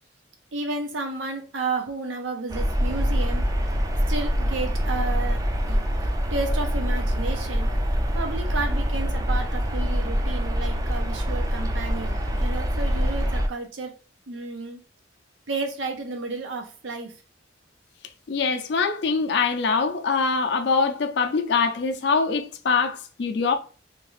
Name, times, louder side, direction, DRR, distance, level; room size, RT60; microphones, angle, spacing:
voice 1, 0.5-3.4 4.1-5.4 5.7-5.8 6.3-7.7 8.1-13.9 14.3-14.8 15.5-17.1, right 3 dB, 85° right, 0.7 m, -32 dB
sound 1, 2.5-13.5, equal, 20° right, 0.3 m, -25 dB
voice 2, 18.3-23.6, left 4 dB, 65° left, 0.4 m, -23 dB
2.8 x 2.4 x 3.0 m
head